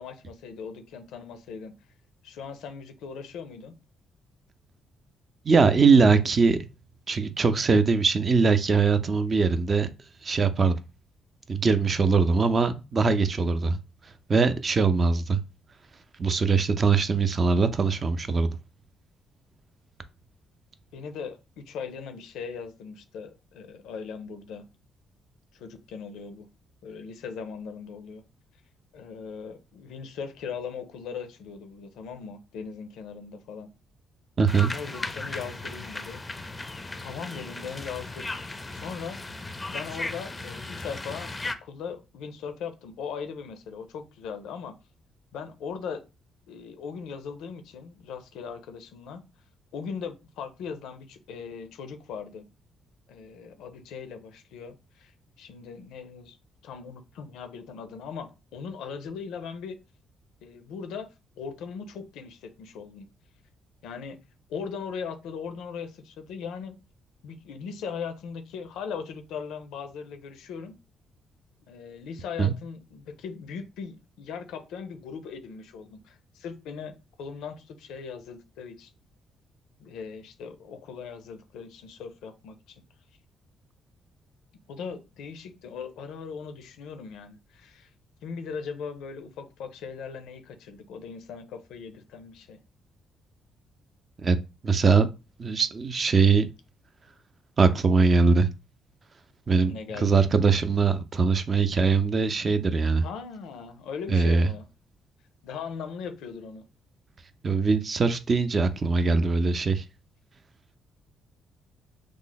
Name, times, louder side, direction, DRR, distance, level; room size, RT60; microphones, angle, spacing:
voice 1, 0.0-1.7 2.2-3.7 20.9-24.7 25.5-26.5 26.8-28.2 28.9-33.7 34.7-36.5 37.0-38.3 38.7-39.2 39.7-44.7 45.3-46.0 46.5-49.2 49.7-52.5 53.1-55.1 55.4-56.4 56.6-59.8 60.4-61.1 61.4-63.1 63.8-64.2 64.5-66.8 67.2-70.7 71.7-78.9 79.8-82.8 84.7-87.9 88.2-92.6 99.6-100.3 103.0-104.7 105.4-106.6, left 6 dB, 90° left, 0.5 m, -39 dB
voice 2, 5.4-6.6 7.1-9.9 10.2-10.7 11.5-13.8 14.3-15.4 16.2-18.5 34.4-34.7 72.4-72.5 94.2-94.4 94.6-95.1 95.4-96.5 97.6-98.5 99.5-103.0 104.1-104.5 107.4-109.8, right 4 dB, 40° right, 0.5 m, -22 dB
sound 1, 34.5-41.5, left 2 dB, 20° left, 0.4 m, -36 dB
3.1 x 2.0 x 3.9 m
cardioid pair, 90°, 0 cm